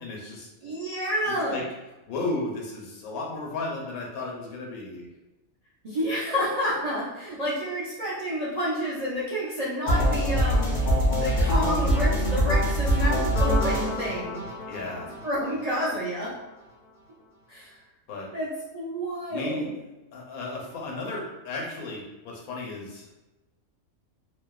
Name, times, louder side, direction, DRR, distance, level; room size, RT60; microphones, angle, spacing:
voice 1, 0.0-0.5 1.2-1.6 2.1-5.1 14.6-15.1 18.1-18.3 19.3-19.7 20.1-23.1, left 2 dB, 85° left, -1 dB, 1.1 m, -34 dB
voice 2, 0.6-1.6 5.8-14.4 15.2-16.3 17.5-17.8 18.3-19.7, equal, 60° right, -9 dB, 0.4 m, -29 dB
sound 1, 9.9-15.8, equal, 70° left, 0.4 m, -24 dB
2.6 x 2.0 x 2.3 m, 1.1 s
omnidirectional pair, 1.4 m